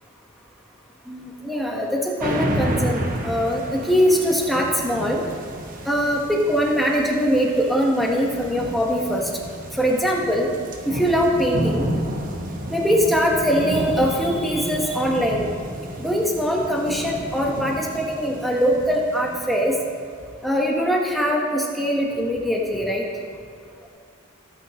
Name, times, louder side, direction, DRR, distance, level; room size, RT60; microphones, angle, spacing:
voice 1, 1.1-5.2 5.8-9.2 9.7-10.5 10.8-11.9 12.7-15.5 16.0-19.7 20.4-23.0, equal, ahead, -2 dB, 1.4 m, -22 dB
sound 1, 2.2-20.0, right 1 dB, 40° right, 1.1 m, -31 dB
17.0 x 9.3 x 3.2 m, 2.4 s
head